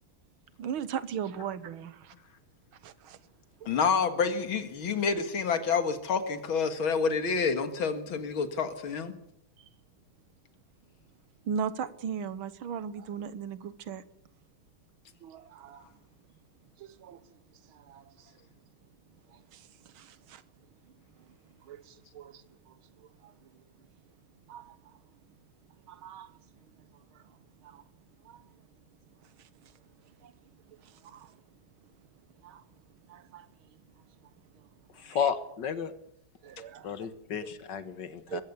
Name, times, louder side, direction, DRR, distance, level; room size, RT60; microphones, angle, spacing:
voice 1, 0.6-2.1 2.8-3.2 3.6-3.8 9.6-9.7 11.4-14.0 15.2-15.9 16.8-17.2 17.7-18.3 19.3-20.4 21.2-21.3 21.6-23.6 24.5-25.0 25.9-26.3 26.8-27.2 27.6-27.8 28.2-28.4 29.2-29.7 30.2-30.3 30.7-31.4 32.4-32.6 33.1-33.5 34.2-34.7 36.4-37.1 37.4-37.5 38.3-38.4, right 7 dB, 90° right, 2.0 m, -39 dB
voice 2, 3.7-9.1, left 5 dB, 85° left, 2.7 m, -28 dB
voice 3, 35.0-35.9 36.8-38.4, left 7 dB, 60° left, 2.1 m, -32 dB
21.5 x 15.5 x 8.3 m
omnidirectional pair, 2.2 m